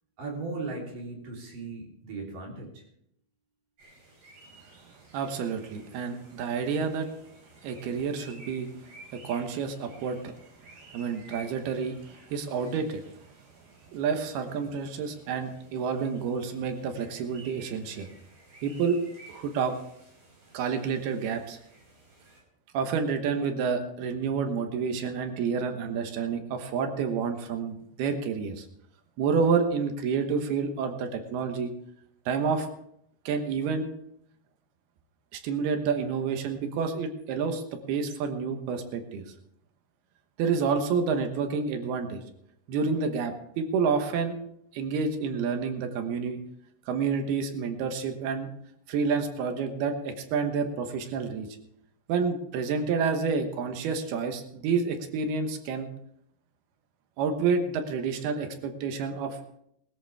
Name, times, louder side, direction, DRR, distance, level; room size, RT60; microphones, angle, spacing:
voice 1, 0.2-2.8, right 3 dB, 60° right, -2 dB, 5.1 m, -37 dB
sound 1, 3.8-22.4, right 2 dB, 40° right, 6.2 m, -54 dB
voice 2, 5.1-7.1 7.6-8.7 9.1-10.3 10.9-13.0 13.9-18.1 18.6-19.0 19.3-19.7 20.5-21.6 22.7-28.7 29.2-31.7 32.3-32.7 33.3-33.9 35.3-39.2 40.4-42.2 42.7-44.3 44.7-46.4 46.9-48.5 48.9-51.5 52.1-55.9 57.2-59.4, right 5 dB, 85° right, 6 dB, 3.2 m, -29 dB
20.0 x 14.0 x 3.5 m, 0.74 s
omnidirectional pair, 4.4 m